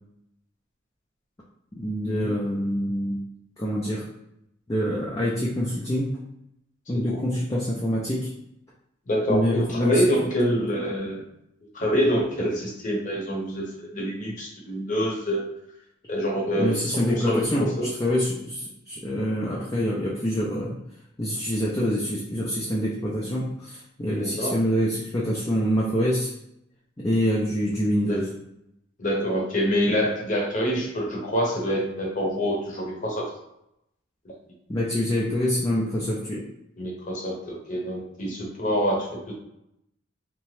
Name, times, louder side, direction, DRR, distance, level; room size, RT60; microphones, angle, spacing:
voice 1, 1.8-3.2 3.6-4.0 4.7-6.1 6.9-8.3 9.3-10.0 10.5-10.6 16.6-17.7 18.0-20.8 21.2-26.3 27.0-28.3 34.7-36.4, equal, 15° left, -5 dB, 0.4 m, -25 dB
voice 2, 9.1-11.2 11.7-15.5 16.1-17.9 24.2-24.6 28.0-28.2 29.0-33.3 36.8-39.3, equal, 40° left, -2 dB, 0.8 m, -26 dB
2.8 x 2.1 x 3.0 m, 0.81 s
head